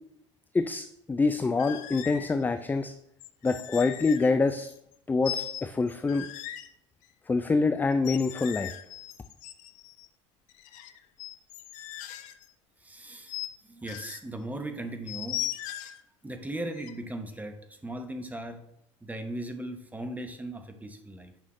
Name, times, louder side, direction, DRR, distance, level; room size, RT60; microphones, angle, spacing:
voice 1, 0.5-2.9 3.4-4.7 5.1-6.2 7.3-8.7, left 3 dB, 10° left, 9 dB, 0.4 m, -26 dB
sound 1, 1.6-2.3 3.2-4.9 5.2-6.7 7.9-10.1 10.5-12.5 13.3-13.5 13.9-14.2 15.1-16.0 16.7-17.0, left 12 dB, 55° left, 0.6 m, -38 dB
voice 2, 12.8-13.4 13.6-15.5 16.2-18.6 19.0-21.3, right 1 dB, 10° right, 6 dB, 1.0 m, -38 dB
8.7 x 5.5 x 3.1 m, 0.77 s
hypercardioid pair, 70°, 16 cm